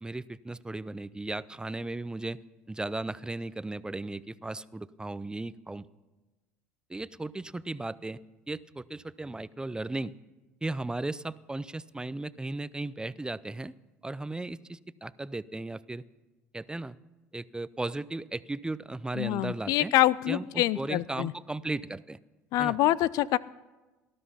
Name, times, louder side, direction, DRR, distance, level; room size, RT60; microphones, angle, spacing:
voice 1, 0.0-2.4 2.7-5.9 6.9-8.2 8.5-10.1 10.6-13.7 14.0-16.0 16.5-17.0 17.3-19.9 20.3-22.2 22.6-22.8, right 2 dB, 10° right, 18 dB, 0.5 m, -36 dB
voice 2, 19.2-21.3 22.5-23.4, left 15 dB, 60° left, 20 dB, 0.4 m, -25 dB
18.5 x 12.5 x 5.6 m, 1.2 s
hypercardioid pair, 65°, 7 cm